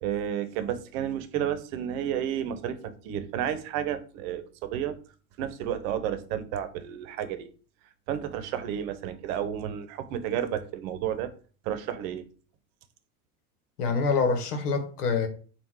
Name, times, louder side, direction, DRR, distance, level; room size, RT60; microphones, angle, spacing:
voice 1, 0.0-2.8 3.0-5.0 5.4-7.5 8.1-11.3 11.6-12.2, right 10 dB, 65° right, 0.8 m, -31 dB
voice 2, 13.8-15.3, left 4 dB, 85° left, 1.0 m, -26 dB
3.7 x 2.5 x 4.6 m
hypercardioid pair, 90°, 45 cm